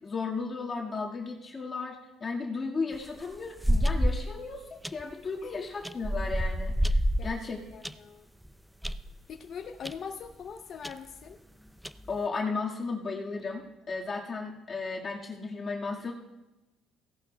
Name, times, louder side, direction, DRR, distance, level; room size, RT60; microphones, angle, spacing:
voice 1, 0.0-7.6 12.1-16.1, left 4 dB, 30° left, -2 dB, 1.7 m, -35 dB
sound 1, 2.9-4.4 4.8-5.1 5.8-7.9 8.4-8.5 8.8-9.1 9.8-10.0 10.2-10.3 10.8-10.9 11.7-12.2, equal, ahead, 0.3 m, -28 dB
voice 2, 7.7-8.3 9.3-11.4, left 6 dB, 45° left, 4 dB, 0.6 m, -42 dB
16.5 x 11.5 x 2.3 m, 1.0 s
cardioid pair, 125°, 0 cm